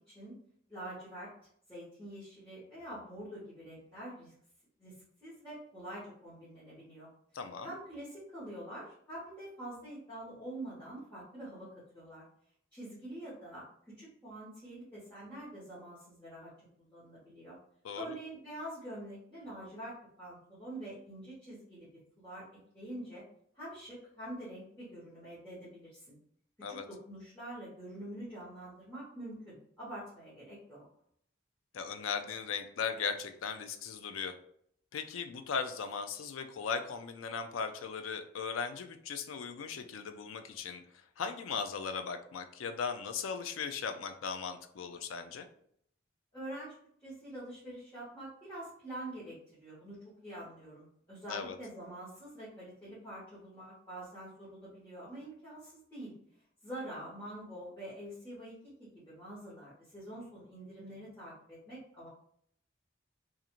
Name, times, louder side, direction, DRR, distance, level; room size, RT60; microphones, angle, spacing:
voice 1, 0.7-1.3 1.7-4.3 4.8-7.1 7.6-11.7 11.9-12.2 12.7-16.5 16.8-17.6 17.9-21.9 22.2-22.4 22.7-23.2 23.5-26.2 26.7-30.8 46.3-46.7 47.0-56.1 56.6-62.1, right 1 dB, 10° left, -11 dB, 1.0 m, -46 dB
voice 2, 7.3-7.7 17.8-18.1 26.6-26.8 31.7-34.3 34.9-45.5 51.3-51.6, left 6 dB, 85° left, 8 dB, 0.4 m, -38 dB
2.5 x 2.4 x 2.9 m, 0.66 s
head